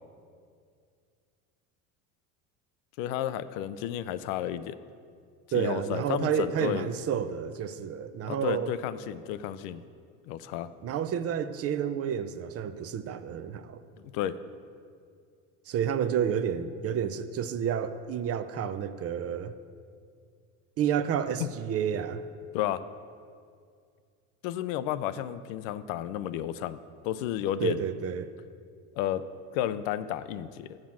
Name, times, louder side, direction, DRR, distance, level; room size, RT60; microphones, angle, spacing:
voice 1, 3.0-4.8 5.5-6.9 8.3-9.8 10.3-10.7 14.1-14.4 21.4-21.5 22.5-22.8 24.4-26.8 27.0-27.9 29.0-29.2 29.5-30.7, left 11 dB, 75° left, 14 dB, 0.5 m, -32 dB
voice 2, 5.5-8.7 10.8-13.8 15.7-19.5 20.8-22.2 27.6-28.3, right 8 dB, 40° right, 11 dB, 0.5 m, -30 dB
7.4 x 6.2 x 7.3 m, 2.2 s
supercardioid pair, 95°, 39 cm